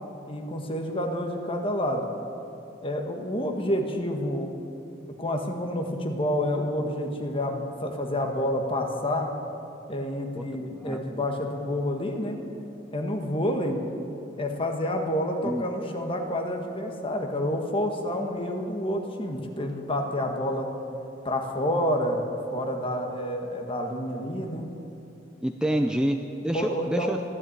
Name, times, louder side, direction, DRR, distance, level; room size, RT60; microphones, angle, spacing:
voice 1, 0.3-2.0 2.8-4.5 5.2-9.3 9.9-12.4 12.9-13.8 14.4-20.7 21.2-22.2 22.5-24.7 25.7-25.8 26.5-27.3, left 1 dB, 30° left, 3 dB, 1.6 m, -29 dB
voice 2, 10.4-11.3 15.4-15.7 25.4-27.3, equal, 5° right, 5 dB, 0.5 m, -28 dB
13.5 x 12.0 x 8.8 m, 2.9 s
head